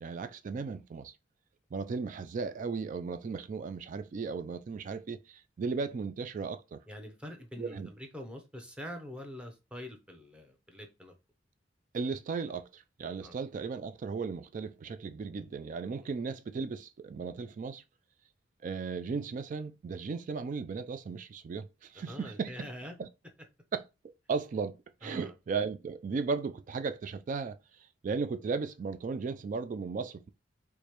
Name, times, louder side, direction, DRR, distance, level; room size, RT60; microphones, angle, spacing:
voice 1, 0.0-1.1 1.7-6.8 7.6-7.9 11.9-17.8 18.6-22.7 23.0-23.1 23.7-23.8 24.3-24.8 25.0-27.6 28.0-30.3, right 5 dB, 45° right, 0.3 m, -36 dB
voice 2, 6.9-11.1 13.2-13.3 16.0-16.2 21.9-23.0 25.0-25.3, equal, 5° right, 0.7 m, -45 dB
4.8 x 2.1 x 2.9 m
head